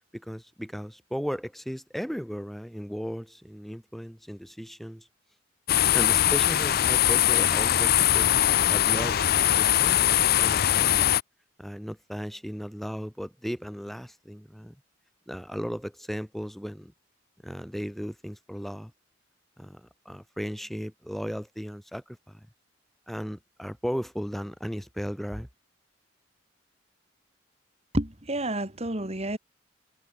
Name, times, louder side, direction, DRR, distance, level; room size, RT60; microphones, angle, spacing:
voice 1, 0.1-5.1 5.9-8.4 8.7-11.1 11.6-14.8 15.3-16.9 17.4-18.9 19.6-22.5 23.1-25.5, equal, ahead, 4.1 m, -36 dB
sound 1, 5.7-11.2, left 12 dB, 50° left, 0.5 m, -22 dB
voice 2, 27.9-29.4, right 1 dB, 35° right, 3.1 m, -29 dB
head